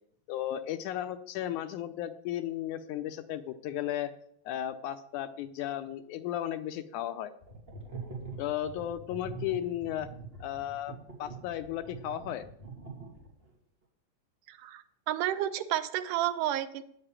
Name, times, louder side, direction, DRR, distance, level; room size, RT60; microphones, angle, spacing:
voice 1, 0.3-4.1 4.5-7.3 8.4-10.1 10.4-12.5, left 11 dB, 80° left, 11 dB, 1.9 m, -35 dB
sound 1, 7.4-13.5, right 4 dB, 20° right, 2.6 m, -44 dB
voice 2, 14.5-16.8, right 12 dB, 80° right, 11 dB, 2.3 m, -31 dB
9.8 x 6.8 x 8.7 m, 0.68 s
omnidirectional pair, 3.7 m